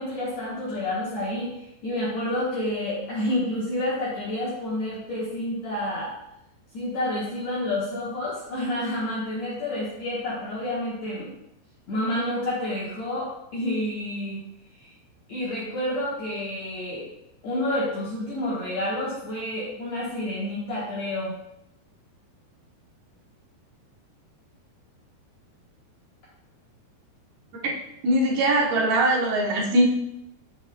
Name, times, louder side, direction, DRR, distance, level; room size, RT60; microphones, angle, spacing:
voice 1, 0.0-6.1 6.7-11.3 11.9-14.4 14.8-14.9 15.3-17.1 17.4-21.3, left 1 dB, 65° left, -7 dB, 1.8 m, -29 dB
voice 2, 28.0-29.9, right 1 dB, 70° right, -2 dB, 2.8 m, -21 dB
8.1 x 7.4 x 2.2 m, 0.84 s
omnidirectional pair, 4.8 m